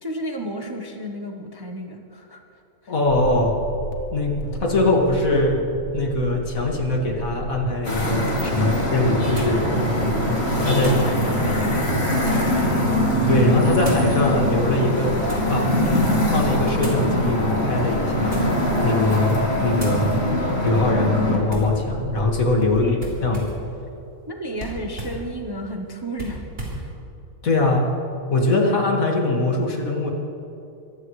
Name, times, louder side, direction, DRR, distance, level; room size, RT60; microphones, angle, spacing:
voice 1, 0.0-2.9 10.5-13.4 22.8-23.0 24.3-26.4 26.8-26.9, equal, 20° right, 2 dB, 0.8 m, -33 dB
voice 2, 2.9-3.5 4.1-5.6 5.9-9.6 10.6-10.9 13.3-15.2 15.5-15.7 16.3-18.4 18.8-20.3 20.6-23.0 23.2-23.5 27.4-27.9 28.3-30.1, left 2 dB, 65° left, 0 dB, 2.4 m, -22 dB
sound 1, 3.1-22.8, right 3 dB, 60° right, 1.7 m, -32 dB
sound 2, 7.8-21.4, left 1 dB, 45° left, 2.9 m, -22 dB
sound 3, 9.4-9.6 10.8-11.1 11.8-12.6 13.8-14.1 14.9-15.6 16.8-17.1 18.2-18.7 19.1-19.3 19.8-20.1 21.5-21.8 23.0-23.7 24.6-25.2 26.1-26.8, right 1 dB, 45° right, 4.0 m, -36 dB
24.5 x 14.5 x 3.2 m, 2.7 s
omnidirectional pair, 1.6 m